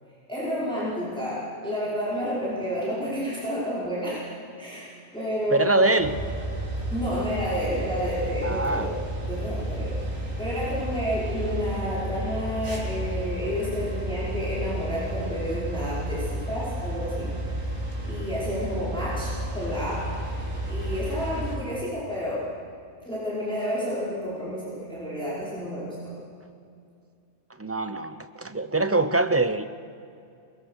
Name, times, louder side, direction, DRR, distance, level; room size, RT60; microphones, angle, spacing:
voice 1, 0.3-4.3 4.6-6.0 6.9-9.0 9.3-10.0 10.4-17.3 18.0-20.1 20.7-22.5 23.0-26.1, equal, 5° left, -8 dB, 5.1 m, -30 dB
voice 2, 5.5-6.1 8.4-8.9 27.6-29.6, right 2 dB, 15° right, 10 dB, 0.6 m, -24 dB
sound 1, 6.0-21.6, right 1 dB, 85° right, 3.5 m, -32 dB
23.0 x 20.0 x 6.5 m, 2.4 s
omnidirectional pair, 1.2 m